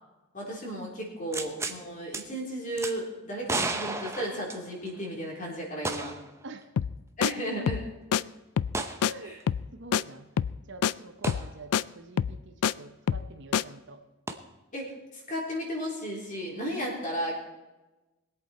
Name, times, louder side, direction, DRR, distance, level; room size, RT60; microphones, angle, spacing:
voice 1, 0.3-6.1 7.2-7.8 9.2-9.4 11.3-11.4 14.7-17.4, equal, 35° left, -2 dB, 3.7 m, -34 dB
sound 1, 1.3-1.8 2.1-2.2 2.8-2.9 3.5-5.0 5.8-6.3 6.6-6.7 8.7-9.0 11.2-11.4 14.3-14.4, right 3 dB, 10° right, 0.7 m, -32 dB
sound 2, 6.8-7.0 7.2-7.3 7.7-7.9 8.1-8.2 8.6-8.8 9.0-9.1 9.5-9.7 9.9-10.0 10.4-10.6 10.8-10.9 11.3-11.5 11.7-11.8 12.2-12.7 13.1-13.3 13.5-13.6, left 8 dB, 85° left, 0.3 m, -26 dB
voice 2, 9.0-9.4 9.7-10.3 10.7-14.0, right 3 dB, 55° right, 7 dB, 0.9 m, -46 dB
21.5 x 8.2 x 4.4 m, 1.1 s
head